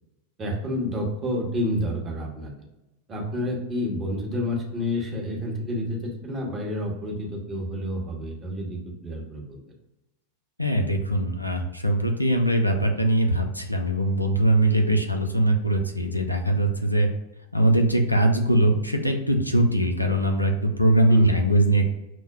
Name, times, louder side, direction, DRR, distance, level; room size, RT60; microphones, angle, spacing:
voice 1, 0.4-2.5 3.1-9.6 21.1-21.4, left 1 dB, 25° right, -1 dB, 0.9 m, -29 dB
voice 2, 10.6-17.1 17.5-21.9, right 1 dB, 90° left, 3 dB, 0.4 m, -21 dB
6.0 x 2.1 x 2.3 m, 0.98 s
figure-of-eight pair, 90°, 0 cm